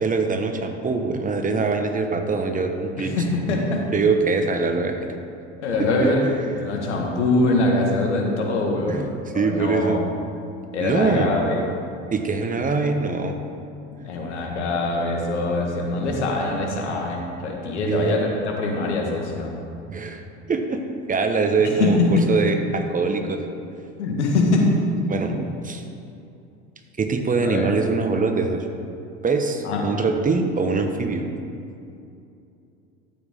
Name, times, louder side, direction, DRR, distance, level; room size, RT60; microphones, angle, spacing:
voice 1, 0.0-3.2 3.9-5.0 5.8-6.1 8.9-9.1 9.3-10.0 10.8-11.3 12.1-13.4 17.8-18.2 19.9-20.8 21.1-23.4 25.1-25.3 25.6-25.8 27.0-28.7 29.2-31.3, right 4 dB, 25° right, 5 dB, 1.2 m, -23 dB
voice 2, 3.0-3.9 5.6-10.1 10.7-11.6 14.0-19.5 21.8-22.3 24.0-25.4 27.4-27.7 29.6-29.8, left 2 dB, 85° left, 0 dB, 1.7 m, -23 dB
12.5 x 7.7 x 3.7 m, 2.6 s
hypercardioid pair, 75°, 34 cm